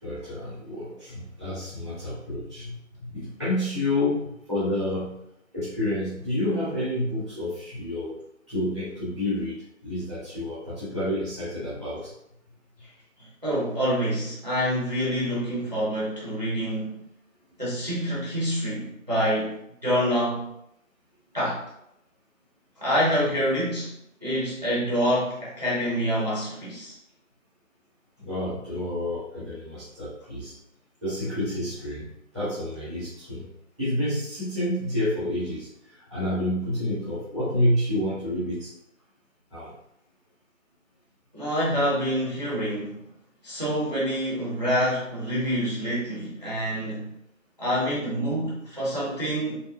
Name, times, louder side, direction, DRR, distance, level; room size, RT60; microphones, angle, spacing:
voice 1, 0.0-5.1 5.5-8.1 8.5-12.1 28.2-30.5 31.0-32.1 32.3-33.5 33.8-38.7 39.5-39.7, left 1 dB, ahead, -13 dB, 0.8 m, -29 dB
voice 2, 13.2-17.0 17.6-19.6 19.8-20.5 21.3-21.6 22.8-23.9 24.2-27.0 41.3-43.0 43.4-47.1 47.6-49.6, equal, 35° right, -6 dB, 0.6 m, -26 dB
3.5 x 2.8 x 2.3 m, 0.78 s
figure-of-eight pair, 180°, 40 cm